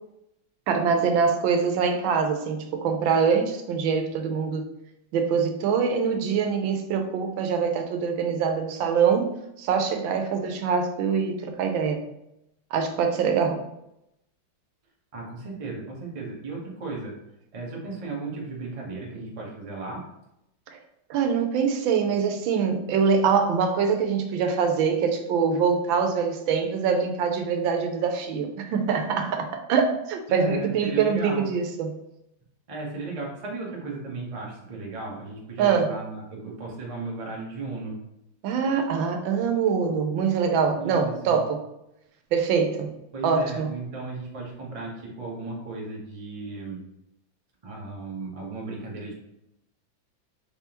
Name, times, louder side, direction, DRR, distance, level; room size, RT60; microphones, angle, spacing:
voice 1, 0.7-4.6 5.1-9.3 9.6-12.0 12.7-13.6 20.7-20.8 21.1-31.9 35.6-35.9 38.4-41.6 42.3-42.9 43.2-43.7, right 6 dB, 85° right, 5 dB, 1.4 m, -24 dB
voice 2, 15.1-17.1 17.5-20.0 30.3-31.5 32.7-38.0 40.7-41.4 43.1-46.8 47.6-49.1, right 3 dB, 30° right, -3 dB, 0.7 m, -35 dB
4.7 x 3.4 x 2.9 m, 0.83 s
omnidirectional pair, 2.1 m